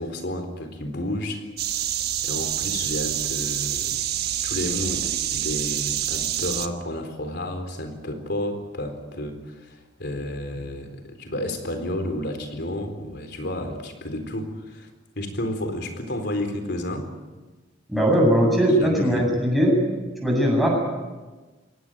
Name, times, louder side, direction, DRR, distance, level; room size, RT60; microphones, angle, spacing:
voice 1, 0.0-1.4 2.2-4.0 4.3-14.9 15.2-17.1 18.8-19.2, left 1 dB, 60° left, 7 dB, 4.0 m, -31 dB
sound 1, 1.6-6.7, right 11 dB, 55° right, 1.3 m, -27 dB
voice 2, 17.9-19.8 20.2-20.8, equal, ahead, -2 dB, 8.0 m, -19 dB
23.5 x 18.5 x 9.3 m, 1.3 s
head